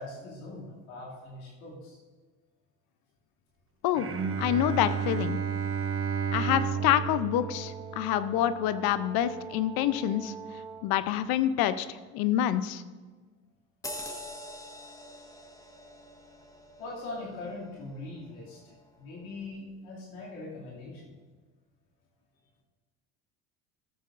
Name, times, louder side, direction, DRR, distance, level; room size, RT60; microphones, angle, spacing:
voice 1, 0.0-2.0 16.8-21.1, left 2 dB, 85° left, -5 dB, 2.5 m, -41 dB
Bowed string instrument, 3.9-9.2, right 7 dB, 30° right, 1.1 m, -32 dB
voice 2, 4.4-5.4 6.3-10.3 10.8-12.8, left 12 dB, 60° left, 14 dB, 0.6 m, -27 dB
Brass instrument, 6.7-11.0, right 5 dB, 15° right, 2.4 m, -44 dB
sound 1, 13.8-18.8 19.2-19.4, left 1 dB, 10° left, 1.4 m, -45 dB
14.0 x 8.2 x 2.5 m, 1.3 s
hypercardioid pair, 75°, 42 cm